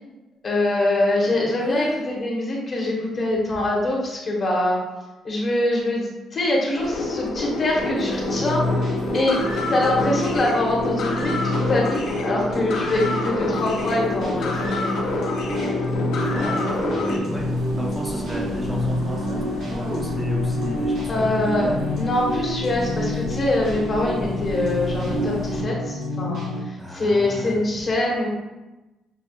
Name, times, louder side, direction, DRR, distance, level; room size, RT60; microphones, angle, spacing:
voice 1, 0.4-4.8 5.2-8.6 9.1-9.4 9.7-15.0 21.1-21.7 22.0-28.3, left 1 dB, 35° left, -3 dB, 1.0 m, -24 dB
voice 2, 1.3-2.1 16.3-22.1 26.8-27.6, equal, 10° right, -3 dB, 0.6 m, -33 dB
sound 1, 6.7-17.2, left 3 dB, 85° left, 0.6 m, -27 dB
sound 2, 7.7-26.6, left 1 dB, 65° right, 1.2 m, -28 dB
sound 3, 17.3-25.6, equal, 85° right, 1.1 m, -36 dB
6.1 x 2.4 x 2.3 m, 1.1 s
cardioid pair, 150°, 0 cm